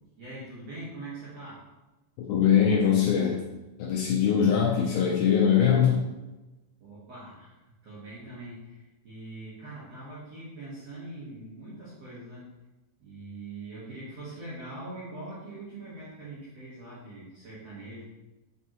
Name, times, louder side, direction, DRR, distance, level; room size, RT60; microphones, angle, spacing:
voice 1, 0.2-1.6 4.2-4.7 6.8-12.5 13.0-18.0, right 2 dB, 60° right, -9 dB, 1.8 m, -43 dB
voice 2, 2.3-3.4 3.8-6.1, left 8 dB, 80° left, -2 dB, 2.1 m, -22 dB
7.2 x 4.6 x 2.9 m, 1.1 s
omnidirectional pair, 5.1 m